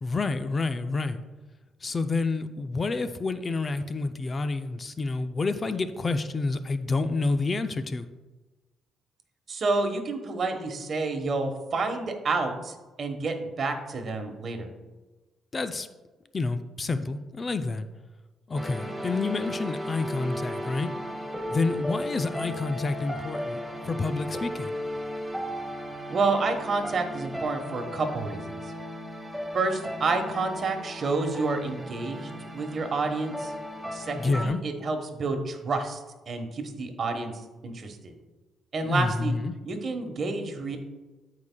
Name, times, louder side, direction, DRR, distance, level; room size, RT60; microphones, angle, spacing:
voice 1, 0.0-1.2 1.8-8.1 15.5-15.9 16.3-17.9 18.5-20.9 21.5-23.6 23.8-24.7 34.2-34.6 38.8-39.5, left 3 dB, 35° left, 10 dB, 0.4 m, -28 dB
voice 2, 9.5-14.7 26.1-28.6 29.5-33.5 33.9-37.3 37.6-38.1 38.7-39.3 39.6-40.8, right 3 dB, 50° right, 5 dB, 1.2 m, -29 dB
sound 1, 18.5-34.5, equal, 5° right, 1.2 m, -35 dB
14.0 x 4.8 x 2.2 m, 1.2 s
cardioid pair, 90°, 0 cm